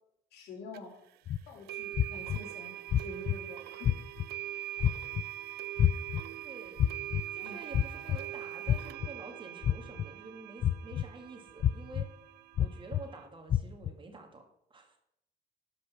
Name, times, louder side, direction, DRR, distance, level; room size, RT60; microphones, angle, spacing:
voice 1, 0.3-0.9 1.5-4.0 7.4-7.6, left 4 dB, 75° left, 0 dB, 3.0 m, -47 dB
sound 1, 0.7-0.8 1.7-13.3, right 14 dB, 70° right, 0.5 m, -43 dB
sound 2, 1.3-1.4 1.9-2.4 2.9-3.3 3.8-4.2 4.8-5.2 5.8-6.2 6.8-7.2 7.7-8.2 8.7-9.1 9.6-10.1 10.6-11.0 11.6-12.0 12.6-13.0 13.5-13.9, left 10 dB, 40° left, 0.4 m, -27 dB
voice 2, 6.3-6.8 7.3-12.1 12.6-14.4 14.7-15.0, right 3 dB, 30° right, 3 dB, 2.1 m, -48 dB
12.0 x 5.3 x 5.7 m, 0.78 s
cardioid pair, 110°, 17 cm